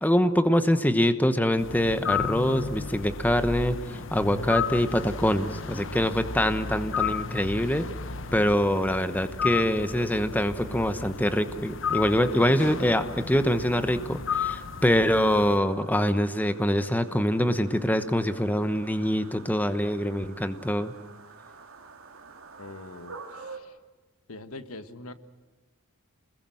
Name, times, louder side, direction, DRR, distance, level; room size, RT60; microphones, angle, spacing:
voice 1, 0.0-7.8 8.3-20.9, equal, 10° left, 10 dB, 1.0 m, -24 dB
sound 1, 1.6-15.6, left 6 dB, 60° left, 1.1 m, -33 dB
sound 2, 14.9-23.6, right 4 dB, 75° right, 2.8 m, -48 dB
voice 2, 22.6-23.8 24.3-25.1, left 2 dB, 85° left, 11 dB, 1.6 m, -43 dB
29.0 x 21.0 x 7.8 m, 1.3 s
head